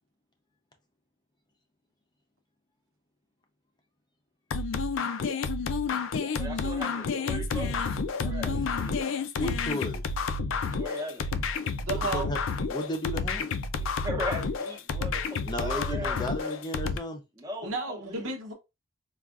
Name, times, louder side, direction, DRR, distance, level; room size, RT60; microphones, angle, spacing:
sound 1, 4.5-17.0, left 4 dB, 70° left, 0.4 m, -30 dB
voice 1, 6.4-7.8 8.2-9.0 10.7-11.3 13.8-16.3 17.4-18.3, left 1 dB, 20° right, 0.7 m, -38 dB
voice 2, 9.4-10.0 12.1-12.4 12.7-13.5 15.4-17.2, left 1 dB, 20° left, 0.6 m, -34 dB
voice 3, 11.8-12.3 17.6-18.5, right 3 dB, 85° right, 0.9 m, -33 dB
4.6 x 2.4 x 2.4 m
head